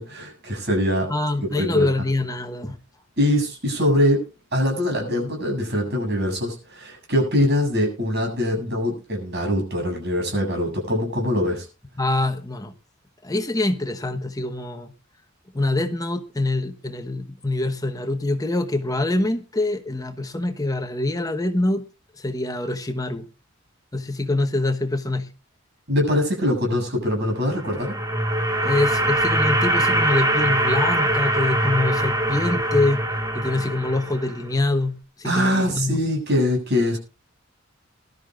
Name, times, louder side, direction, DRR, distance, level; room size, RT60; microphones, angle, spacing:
voice 1, 0.0-1.1 1.5-1.9 3.2-4.2 4.5-11.7 25.9-27.9 35.2-37.0, left 1 dB, 55° right, 7.3 m, -23 dB
voice 2, 1.1-2.8 12.0-12.7 13.2-14.9 15.5-21.8 22.2-23.2 23.9-25.3 28.6-33.1 33.3-36.0, left 2 dB, 20° left, 1.0 m, -25 dB
sound 1, 27.4-34.5, right 1 dB, 20° right, 1.9 m, -23 dB
22.0 x 12.5 x 2.4 m
head